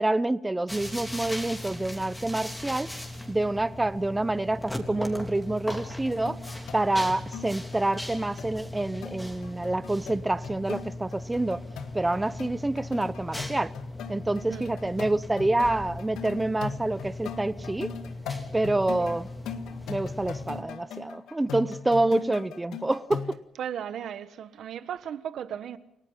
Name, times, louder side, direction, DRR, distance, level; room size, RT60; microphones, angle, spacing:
voice 1, 0.0-2.9 3.3-6.4 6.7-11.6 11.9-13.7 14.1-17.9 18.5-19.3 19.9-23.4, right 2 dB, 10° right, 0.9 m, -27 dB
sound 1, 0.7-20.6, left 1 dB, 5° left, 3.4 m, -39 dB
sound 2, 6.1-23.3, left 7 dB, 80° left, 1.8 m, -40 dB
voice 2, 23.6-25.8, right 9 dB, 65° right, 1.4 m, -36 dB
29.0 x 18.5 x 5.7 m
cardioid pair, 125°, 0 cm